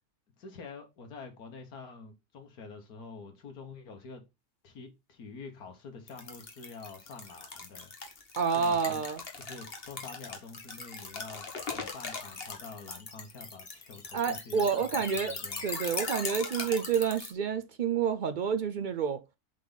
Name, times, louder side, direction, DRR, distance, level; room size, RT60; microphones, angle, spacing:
voice 1, 0.4-4.2 4.6-7.9 8.5-9.0 9.4-15.7, left 4 dB, 80° left, 1.8 m, -47 dB
sound 1, 6.1-17.3, left 4 dB, 40° left, 1.5 m, -40 dB
voice 2, 8.4-9.2 14.1-15.3 15.6-19.2, right 6 dB, 75° right, 0.4 m, -29 dB
7.4 x 4.1 x 3.9 m
omnidirectional pair, 1.6 m